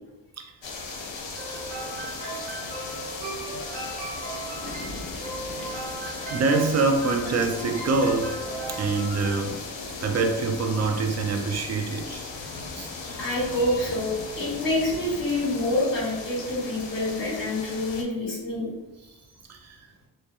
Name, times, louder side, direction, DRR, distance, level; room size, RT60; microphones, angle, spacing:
sound 1, 0.6-18.0, left 3 dB, 80° left, 0.6 m, -37 dB
sound 2, 1.4-9.4, right 2 dB, 85° right, 0.9 m, -37 dB
voice 1, 4.3-5.0 5.3-5.8 6.3-8.3 8.7-9.6 10.0-12.4 12.7-12.9 19.5-19.9, right 3 dB, 40° right, 4 dB, 0.4 m, -26 dB
voice 2, 13.0-18.7, left 1 dB, 50° left, -7 dB, 1.4 m, -27 dB
2.7 x 2.2 x 2.3 m, 1.1 s
cardioid pair, 50°, 44 cm